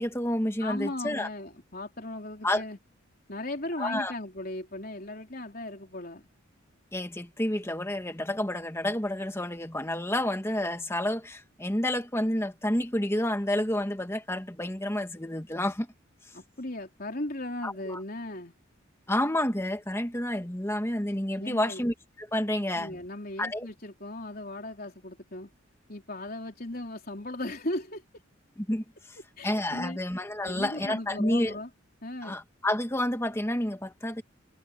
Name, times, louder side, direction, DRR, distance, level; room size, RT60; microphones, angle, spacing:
voice 1, 0.0-1.3 2.4-2.6 3.8-4.1 6.9-15.9 17.6-18.0 19.1-23.0 23.4-23.7 28.7-29.2 29.4-31.6 32.2-34.2, left 1 dB, 15° left, 1.7 m, -29 dB
voice 2, 0.6-2.8 3.3-6.3 16.3-18.5 21.4-21.8 22.7-25.5 25.9-28.0 29.4-30.0 30.4-31.7 32.0-32.3, left 1 dB, 45° left, 4.2 m, -37 dB
head